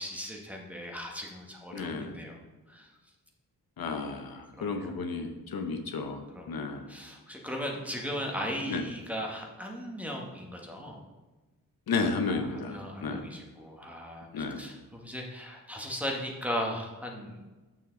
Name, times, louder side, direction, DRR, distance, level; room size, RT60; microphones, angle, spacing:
voice 1, 0.0-2.4 2.7-2.9 4.6-4.9 6.3-6.5 6.9-11.0 12.3-17.4, equal, 5° right, 0 dB, 1.2 m, -37 dB
voice 2, 1.7-2.2 3.8-6.8 8.7-8.8 11.9-13.2 14.3-14.6, left 4 dB, 85° left, 5 dB, 1.0 m, -33 dB
8.3 x 7.0 x 3.9 m, 1.2 s
wide cardioid pair, 155°, 35 cm